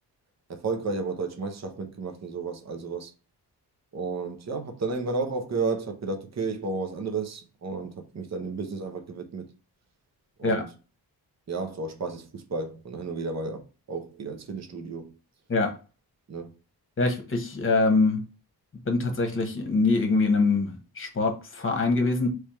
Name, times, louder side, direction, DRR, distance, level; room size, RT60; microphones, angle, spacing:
voice 1, 0.5-3.1 3.9-9.4 10.4-10.7 11.5-15.1 16.3-16.5, right 4 dB, 40° right, 0.8 m, -32 dB
voice 2, 17.0-18.2 18.8-22.3, left 3 dB, 30° left, 1.1 m, -24 dB
3.5 x 3.3 x 4.3 m
wide cardioid pair, 135°, 41 cm